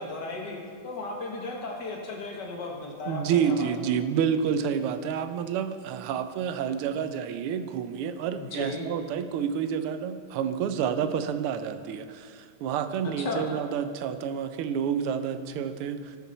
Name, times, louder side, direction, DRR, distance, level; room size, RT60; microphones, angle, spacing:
voice 1, 0.0-3.9 8.4-8.9 13.0-13.5, left 3 dB, 55° left, 0 dB, 1.7 m, -35 dB
voice 2, 3.1-16.2, right 7 dB, 85° right, 10 dB, 1.5 m, -29 dB
16.5 x 6.0 x 4.2 m, 2.1 s
omnidirectional pair, 2.4 m